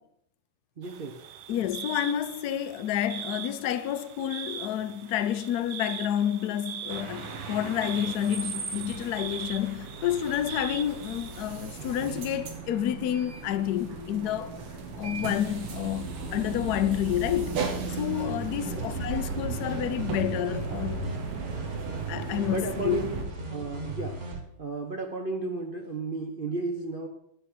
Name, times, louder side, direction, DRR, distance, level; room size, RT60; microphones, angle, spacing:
voice 1, 0.8-1.2 18.6-18.9 22.5-23.2 23.5-24.2 24.6-27.1, right 3 dB, 55° right, 0.6 m, -33 dB
sound 1, 0.8-11.4, right 9 dB, 70° right, 1.6 m, -41 dB
voice 2, 1.5-14.6 15.0-21.0 22.1-23.1, left 10 dB, 75° left, 0.9 m, -29 dB
sound 2, 6.9-23.2, right 4 dB, 90° right, 2.4 m, -36 dB
sound 3, 17.8-24.4, right 2 dB, 35° right, 1.7 m, -38 dB
9.5 x 6.5 x 7.2 m
omnidirectional pair, 2.4 m